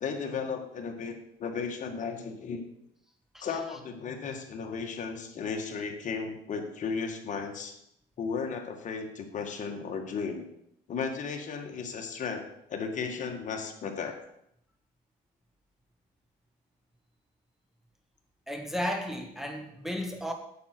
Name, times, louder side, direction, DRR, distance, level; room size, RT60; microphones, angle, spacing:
voice 1, 0.0-2.6 3.4-7.8 8.2-10.5 10.9-14.2, left 5 dB, 50° left, 3 dB, 1.7 m, -35 dB
voice 2, 18.5-20.3, equal, ahead, 4 dB, 1.5 m, -34 dB
9.4 x 7.8 x 4.6 m, 0.75 s
cardioid pair, 110°, 17 cm